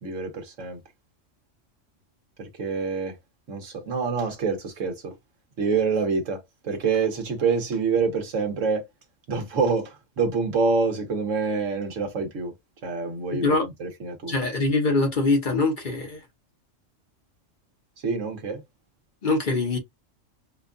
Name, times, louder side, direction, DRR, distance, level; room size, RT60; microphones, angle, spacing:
voice 1, 0.0-0.8 2.4-3.2 3.5-5.1 5.6-8.9 9.3-12.5 12.8-14.3 18.0-18.6, right 4 dB, 80° right, 1.4 m, -26 dB
voice 2, 13.3-13.7 14.3-16.2 19.2-19.8, left 3 dB, 45° left, 0.9 m, -23 dB
4.4 x 2.3 x 2.5 m
omnidirectional pair, 1.3 m